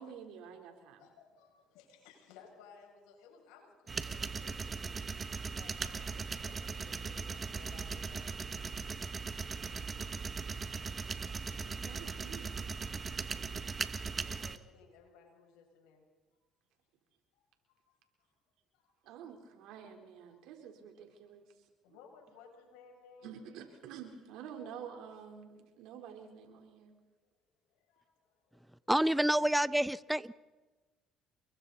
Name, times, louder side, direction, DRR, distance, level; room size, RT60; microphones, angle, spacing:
voice 1, 0.0-1.1 11.6-12.7 13.0-13.6 19.0-21.4 21.9-22.0 23.2-27.0, right 7 dB, 75° right, 3 dB, 3.9 m, -49 dB
voice 2, 1.0-5.1 5.5-8.3 14.1-16.0 17.7-18.0 18.7-18.9 20.3-20.4 21.8-23.4 27.7-28.7, left 6 dB, 85° left, 0 dB, 7.3 m, -59 dB
sound 1, 3.9-14.6, right 5 dB, 35° right, 1.3 m, -39 dB
voice 3, 28.9-30.3, right 1 dB, 5° right, 18 dB, 0.6 m, -28 dB
28.5 x 23.0 x 4.2 m, 1.2 s
supercardioid pair, 75°, 0 cm